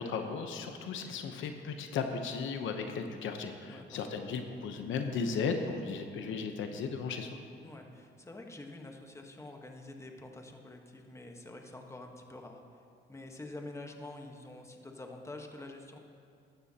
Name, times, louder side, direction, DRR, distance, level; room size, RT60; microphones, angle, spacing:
voice 1, 0.0-7.4, left 5 dB, 75° left, 5 dB, 0.9 m, -35 dB
voice 2, 3.7-4.2 7.6-12.6 13.1-16.0, left 2 dB, 15° left, 3 dB, 1.2 m, -47 dB
15.0 x 12.5 x 2.9 m, 2.3 s
cardioid pair, 90°, 20 cm